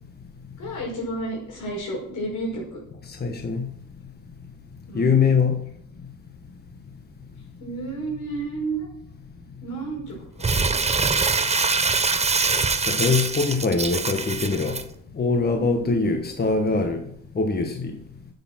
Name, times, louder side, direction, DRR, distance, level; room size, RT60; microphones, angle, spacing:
voice 1, 0.6-2.8 4.9-5.3 7.6-8.9 9.6-10.8 15.5-16.1, right 2 dB, 80° left, 5.5 m, -32 dB
voice 2, 3.2-3.7 4.9-5.6 12.9-14.8 15.2-17.0 17.3-17.8, left 4 dB, 30° left, 1.3 m, -22 dB
Crumpling crinkling, 10.4-14.8, right 4 dB, 20° right, 0.8 m, -23 dB
9.9 x 8.1 x 6.1 m
cardioid pair, 90°, 30 cm